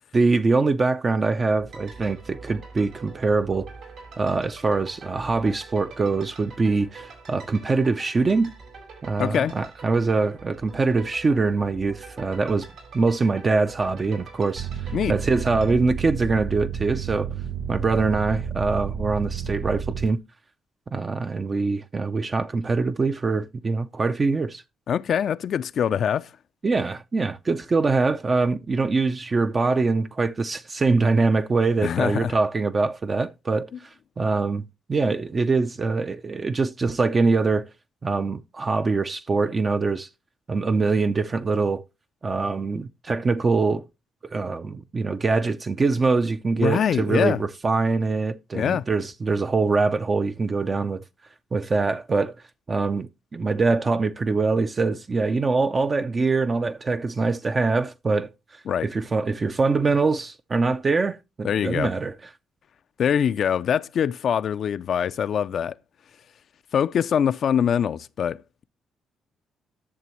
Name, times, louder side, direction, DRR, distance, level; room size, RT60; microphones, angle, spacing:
voice 1, 0.1-3.6 4.2-8.5 9.0-12.7 12.9-17.3 17.7-20.2 20.9-24.6 26.6-34.6 34.9-37.7 38.0-40.1 40.5-41.8 42.2-43.8 44.3-51.0 51.5-52.4 52.7-62.1, right 3 dB, 35° right, 0.4 m, -23 dB
sound 1, 1.5-15.7, right 4 dB, 85° right, 5.0 m, -44 dB
voice 2, 9.2-9.5 14.9-15.1 24.9-26.3 31.8-32.4 46.6-47.4 48.5-48.8 58.7-58.9 61.4-61.9 63.0-65.7 66.7-68.6, left 8 dB, 60° left, 0.4 m, -23 dB
sound 2, 14.5-20.1, right 7 dB, 65° right, 6.5 m, -31 dB
11.0 x 6.8 x 3.0 m
cardioid pair, 90°, 0 cm